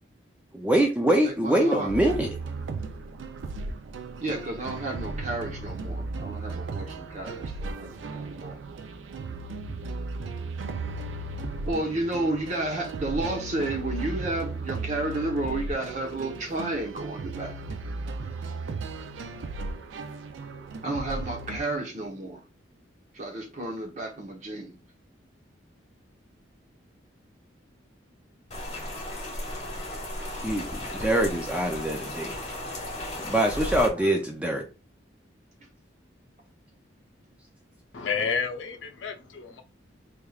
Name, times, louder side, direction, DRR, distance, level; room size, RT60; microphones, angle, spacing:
voice 1, 0.5-2.3 30.4-32.4 33.2-34.6, right 1 dB, 5° right, 0.4 m, -24 dB
voice 2, 1.2-1.9 4.2-8.6 11.6-17.6 20.8-22.4 23.1-24.8 34.0-34.1 38.0-38.1, right 2 dB, 40° right, 0.9 m, -32 dB
sound 1, 1.9-21.6, right 3 dB, 85° right, 0.4 m, -36 dB
Rain, 28.5-33.9, left 1 dB, 35° left, 1.7 m, -35 dB
voice 3, 37.9-39.6, left 6 dB, 85° left, 0.6 m, -30 dB
3.4 x 3.4 x 2.3 m
head